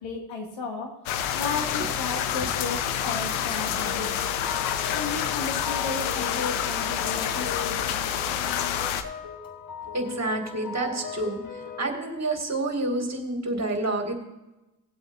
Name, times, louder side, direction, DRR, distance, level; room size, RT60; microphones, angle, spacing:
voice 1, 0.0-0.9 1.3-4.1 4.9-7.8, left 4 dB, 70° left, 1 dB, 2.5 m, -34 dB
sound 1, 1.1-9.0, left 9 dB, 90° left, 0.7 m, -28 dB
sound 2, 3.8-11.9, left 7 dB, 45° left, 1.4 m, -38 dB
voice 2, 9.9-11.4 11.8-14.1, right 2 dB, 35° right, 3 dB, 2.5 m, -28 dB
18.5 x 7.9 x 2.7 m, 1.0 s
supercardioid pair, 45°, 47 cm